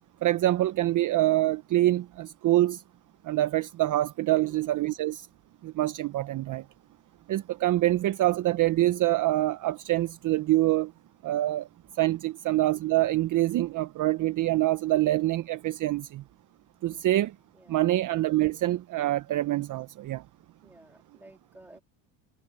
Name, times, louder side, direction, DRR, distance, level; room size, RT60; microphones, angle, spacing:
voice 1, 0.2-2.8 3.2-5.3 5.6-6.6 7.3-10.9 11.2-11.7 12.0-16.2 16.8-17.3 17.7-20.2, right 15 dB, 40° right, 0.8 m, -25 dB
voice 2, 4.3-4.6 17.5-17.8 20.6-21.8, right 1 dB, 5° right, 2.6 m, -53 dB
supercardioid pair, 110°, 47 cm